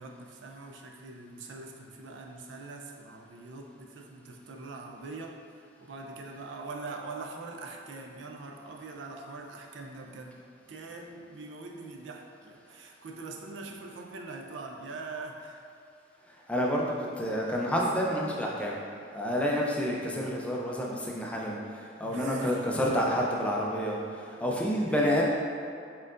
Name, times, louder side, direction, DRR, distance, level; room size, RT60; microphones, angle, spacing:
voice 1, 0.0-5.4 5.8-10.4 10.7-15.6 22.0-23.1, right 3 dB, 80° right, 2 dB, 0.4 m, -43 dB
voice 2, 16.3-18.8 19.1-25.2, equal, 5° left, -3 dB, 0.4 m, -29 dB
4.3 x 3.8 x 2.5 m, 2.3 s
head